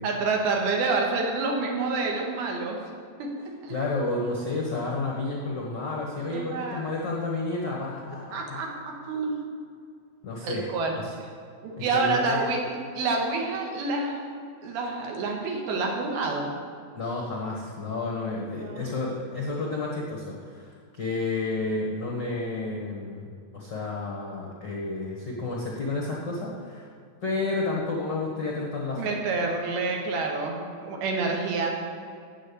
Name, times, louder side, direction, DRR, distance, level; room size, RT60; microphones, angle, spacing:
voice 1, 0.0-2.8 3.2-3.3 3.6-3.7 6.3-6.9 8.3-9.4 10.4-10.9 11.2-11.3 11.6-14.3 14.6-16.5 18.6-18.9 29.0-31.7, right 3 dB, 85° right, 1 dB, 3.5 m, -28 dB
voice 2, 3.7-8.6 10.2-10.7 10.9-11.1 11.8-12.4 16.9-23.3 23.5-26.9 27.2-29.1, left 3 dB, 75° left, -2 dB, 1.0 m, -31 dB
8.7 x 7.8 x 8.4 m, 2.3 s
omnidirectional pair, 4.4 m